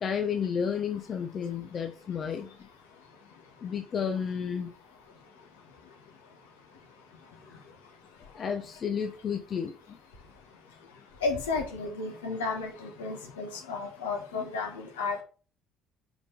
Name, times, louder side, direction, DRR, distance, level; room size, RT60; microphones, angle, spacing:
voice 1, 0.0-2.5 3.6-4.7 8.3-9.7, left 7 dB, 40° left, 6 dB, 0.7 m, -31 dB
voice 2, 11.2-15.2, left 4 dB, 75° left, 2 dB, 1.4 m, -33 dB
5.1 x 5.1 x 5.0 m, 0.37 s
figure-of-eight pair, 55°, 0 cm